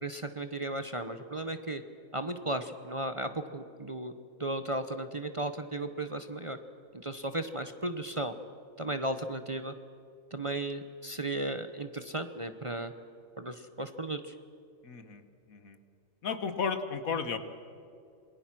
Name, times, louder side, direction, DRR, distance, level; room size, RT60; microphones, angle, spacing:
voice 1, 0.0-1.8 2.1-4.1 4.4-6.6 6.9-8.4 8.8-9.7 10.3-12.9 13.4-14.4, right 1 dB, 25° right, 8 dB, 0.8 m, -35 dB
voice 2, 14.8-15.2 15.5-15.8 16.2-17.4, left 5 dB, 80° left, 10 dB, 1.8 m, -33 dB
28.0 x 20.5 x 6.1 m, 2.6 s
omnidirectional pair, 1.4 m